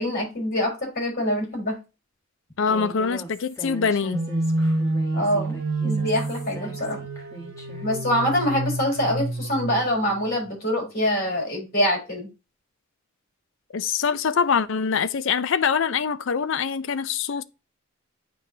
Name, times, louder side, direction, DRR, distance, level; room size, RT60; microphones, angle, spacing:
voice 1, 0.0-1.8 5.1-5.6 5.8-7.0 7.8-12.3, equal, 45° left, 3.7 m, -25 dB
voice 2, 2.6-4.2 13.7-17.4, left 6 dB, 60° left, 0.5 m, -24 dB
Human voice, 2.7-7.9, right 1 dB, 15° left, 1.3 m, -40 dB
sound 1, 4.1-10.3, right 2 dB, 65° right, 0.8 m, -28 dB
9.5 x 3.8 x 2.7 m
head